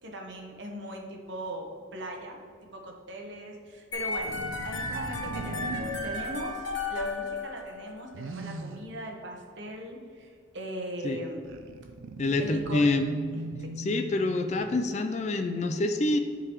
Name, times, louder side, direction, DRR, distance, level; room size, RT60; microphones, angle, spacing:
voice 1, 0.0-4.4 4.6-11.4 12.4-12.9 13.6-13.7, right 1 dB, 60° right, 1 dB, 1.0 m, -39 dB
sound 1, 3.9-8.0, left 3 dB, 65° left, 1.2 m, -34 dB
sound 2, 4.0-6.3 8.1-8.9 11.4-14.9, right 2 dB, 80° right, 0.4 m, -39 dB
voice 2, 12.2-13.0 13.8-16.2, left 2 dB, 35° left, 8 dB, 0.3 m, -26 dB
10.5 x 3.9 x 3.0 m, 2.1 s
head